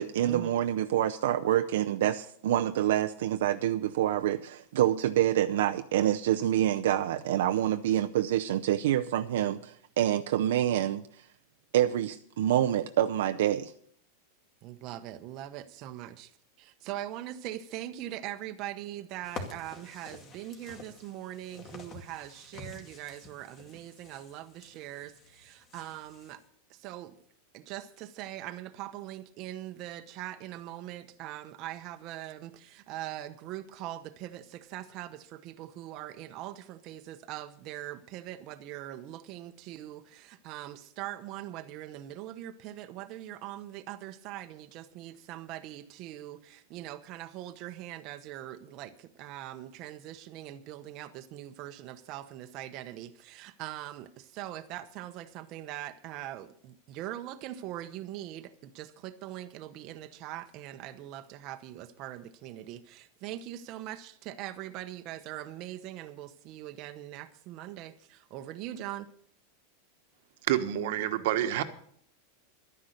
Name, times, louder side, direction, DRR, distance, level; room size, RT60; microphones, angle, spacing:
voice 1, 0.0-11.0 11.7-13.7, right 12 dB, 80° right, 0.6 m, -27 dB
voice 2, 14.6-16.3 16.6-26.4 26.7-27.2 27.5-69.1, right 13 dB, 40° right, 0.9 m, -42 dB
sound 1, 19.2-26.4, left 3 dB, 30° left, 2.2 m, -48 dB
voice 3, 70.5-71.6, right 12 dB, 65° right, 1.2 m, -28 dB
12.0 x 10.0 x 6.5 m
supercardioid pair, 150°, 0 cm